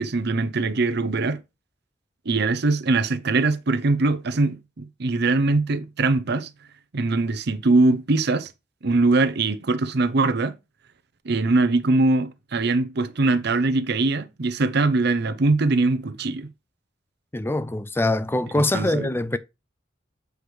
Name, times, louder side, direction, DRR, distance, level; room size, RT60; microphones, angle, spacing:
voice 1, 0.0-1.4 2.3-6.5 6.9-8.5 8.8-10.5 11.2-16.5 18.7-19.1, right 3 dB, 60° right, 0.7 m, -22 dB
voice 2, 17.3-19.4, left 1 dB, 10° left, 0.4 m, -23 dB
7.9 x 4.9 x 3.3 m
head